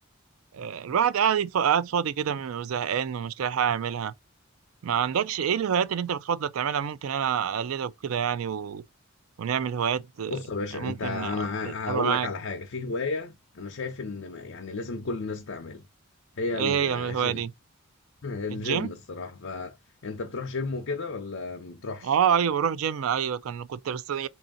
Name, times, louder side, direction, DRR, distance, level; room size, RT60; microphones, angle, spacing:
voice 1, 0.5-4.1 4.8-8.8 9.4-10.4 10.7-11.5 11.9-12.3 16.6-17.5 18.5-18.9 22.0-24.3, right 8 dB, 90° right, 0.4 m, -27 dB
voice 2, 10.3-15.8 16.4-17.5 18.2-19.8 20.0-22.1, left 3 dB, 65° left, 0.7 m, -33 dB
3.5 x 2.7 x 3.8 m
head